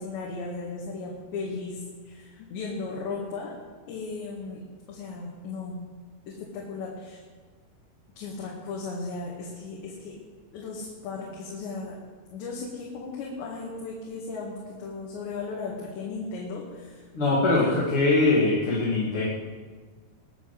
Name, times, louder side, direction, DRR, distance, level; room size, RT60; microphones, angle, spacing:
voice 1, 0.0-3.5 3.9-4.6 4.9-5.8 6.3-7.2 8.2-10.2 10.5-12.0 12.3-17.1 17.6-17.8, left 4 dB, 85° left, -3 dB, 4.2 m, -36 dB
voice 2, 17.1-19.2, left 2 dB, 35° left, -7 dB, 3.1 m, -22 dB
21.0 x 7.2 x 7.9 m, 1.4 s
omnidirectional pair, 4.9 m